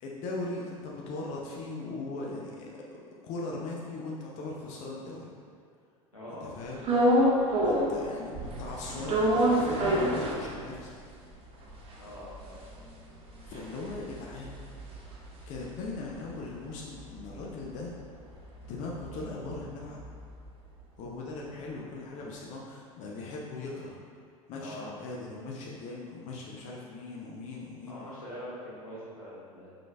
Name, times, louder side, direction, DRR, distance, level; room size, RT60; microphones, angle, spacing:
voice 1, 0.0-5.3 6.3-6.9 7.6-10.9 13.5-14.6 15.5-17.9 18.6-20.0 21.0-24.0 24.5-28.0, left 3 dB, 45° left, -2 dB, 0.6 m, -39 dB
voice 2, 6.1-6.4 12.0-12.6 24.6-24.9 27.9-29.8, equal, 90° left, -9 dB, 1.2 m, -43 dB
sound 1, 6.8-8.0 8.3-10.9 11.3-11.4 11.6-16.1 16.4-20.5, equal, 30° right, 0.8 m, -28 dB
5.0 x 3.8 x 2.3 m, 2.2 s
figure-of-eight pair, 75°, 18 cm